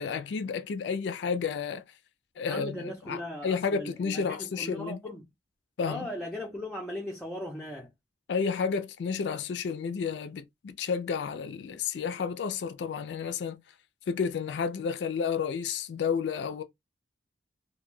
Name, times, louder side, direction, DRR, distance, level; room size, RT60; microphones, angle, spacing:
voice 1, 0.0-1.8 2.4-5.1 5.8-6.1 8.3-13.6 14.1-16.6, left 6 dB, 75° left, 0.3 m, -31 dB
voice 2, 2.5-5.3 5.8-7.9, left 1 dB, ahead, 0.4 m, -38 dB
2.2 x 2.1 x 3.1 m
head